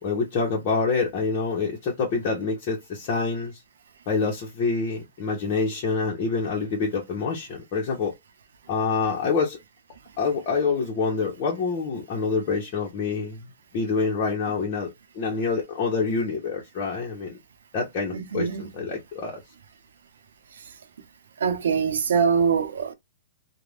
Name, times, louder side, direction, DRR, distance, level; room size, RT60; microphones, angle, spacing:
voice 1, 0.0-3.6 4.1-8.1 8.7-9.6 10.2-13.4 13.7-14.9 15.1-17.4 17.7-19.4, left 4 dB, 30° left, 0.8 m, -26 dB
voice 2, 18.1-18.6 21.4-22.9, right 6 dB, 85° right, 0.7 m, -23 dB
2.5 x 2.2 x 3.2 m
hypercardioid pair, 165°, 0 cm